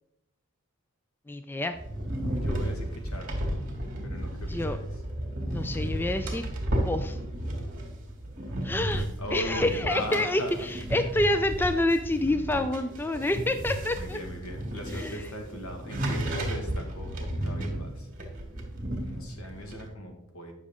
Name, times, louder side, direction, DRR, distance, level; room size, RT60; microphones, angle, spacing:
voice 1, 1.3-1.8 4.5-4.8 5.5-6.5 6.8-7.2 8.6-14.2 14.9-15.3, left 1 dB, 10° left, 9 dB, 0.3 m, -28 dB
sound 1, 1.7-19.9, right 1 dB, 40° right, 1.8 m, -33 dB
voice 2, 2.3-3.3 4.0-4.8 9.2-10.5 14.0-18.1 19.0-20.5, equal, 85° left, 3 dB, 1.7 m, -38 dB
9.4 x 6.2 x 3.7 m, 0.81 s
head